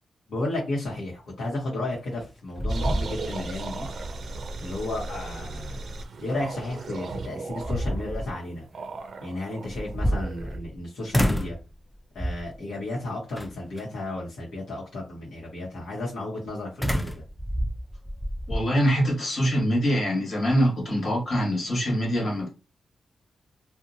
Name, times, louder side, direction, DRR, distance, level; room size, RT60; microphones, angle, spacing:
voice 1, 0.3-3.9 4.6-5.8 6.2-8.7 9.2-11.6 12.1-17.1, left 2 dB, 85° left, 0.9 m, -33 dB
sound 1, 1.9-2.3 2.6-3.6 4.0-4.1 6.8-6.9 7.4-8.3 9.7-10.8 11.1-11.6 12.2-12.6 13.4-13.8 16.8-18.6, equal, 10° left, 0.4 m, -28 dB
sound 2, 2.7-10.6, right 3 dB, 65° right, 0.4 m, -37 dB
voice 2, 18.5-22.5, equal, 50° left, 1.3 m, -24 dB
2.7 x 2.1 x 2.6 m
cardioid pair, 90°, 0 cm